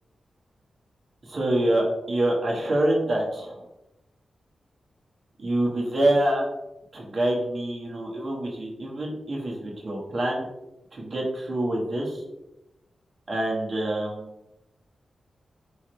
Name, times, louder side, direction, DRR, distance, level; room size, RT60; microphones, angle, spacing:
voice 1, 1.2-3.6 5.4-6.5 6.9-10.5 10.9-12.2 13.3-14.3, right 1 dB, 55° right, -2 dB, 1.3 m, -26 dB
4.5 x 3.6 x 3.1 m, 0.93 s
cardioid pair, 70°, 0 cm